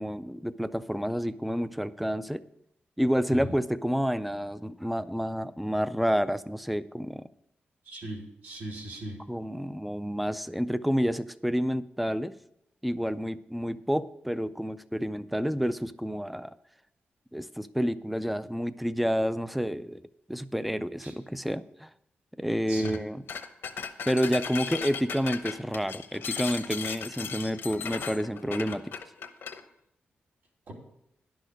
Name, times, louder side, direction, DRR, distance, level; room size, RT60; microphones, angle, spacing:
voice 1, 0.0-2.4 3.0-7.3 9.3-12.4 12.8-16.6 17.3-20.0 20.3-21.9 22.4-23.2 24.1-28.8, equal, ahead, 14 dB, 0.4 m, -29 dB
voice 2, 7.8-9.2 21.0-21.1 22.7-23.0 30.7-30.8, right 1 dB, 70° right, -2 dB, 2.8 m, -38 dB
sound 1, 22.8-23.0 23.3-29.6, left 7 dB, 75° left, 0.9 m, -36 dB
11.0 x 6.4 x 6.4 m, 0.82 s
wide cardioid pair, 135°, 4 cm